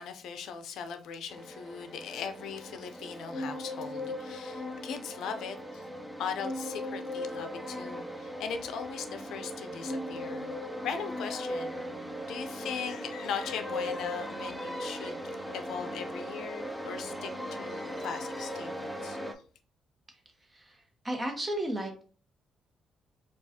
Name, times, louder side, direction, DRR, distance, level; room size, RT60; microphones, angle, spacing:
voice 1, 0.0-5.9 6.2-10.6 10.8-11.8 12.2-15.2 15.5-19.2, left 6 dB, 80° left, 0.4 m, -39 dB
sound 1, 1.3-19.3, equal, ahead, 0.5 m, -38 dB
voice 2, 20.5-22.0, right 1 dB, 20° right, 0.9 m, -34 dB
4.6 x 2.3 x 2.7 m
cardioid pair, 90°, 0 cm